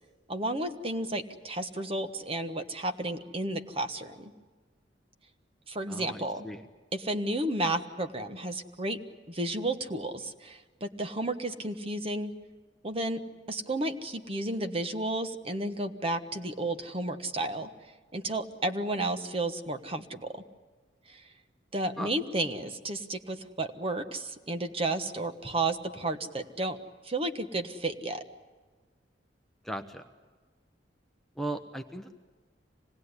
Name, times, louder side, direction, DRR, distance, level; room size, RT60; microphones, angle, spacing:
voice 1, 0.3-4.3 5.7-6.5 6.9-9.0 9.3-12.3 12.8-13.2 13.5-17.7 18.1-20.4 21.1-21.2 21.7-26.8 27.0-28.2, right 2 dB, 30° right, 8 dB, 1.4 m, -32 dB
voice 2, 5.9-6.7 22.0-22.1 29.6-30.0 31.4-32.1, right 1 dB, ahead, 5 dB, 0.9 m, -37 dB
26.0 x 19.0 x 9.7 m, 1.4 s
head